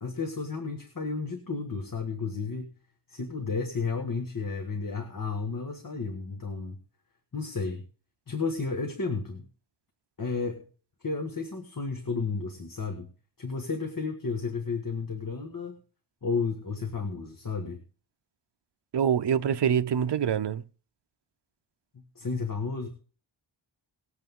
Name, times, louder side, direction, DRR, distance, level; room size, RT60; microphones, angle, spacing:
voice 1, 0.0-2.7 3.1-6.8 7.3-7.8 8.3-9.5 10.2-10.7 11.0-13.1 13.4-15.8 16.2-17.8 21.9-22.9, left 4 dB, 45° left, 1.8 m, -32 dB
voice 2, 18.9-20.6, right 8 dB, 60° right, 0.7 m, -25 dB
20.0 x 8.3 x 3.7 m
wide cardioid pair, 100°, 47 cm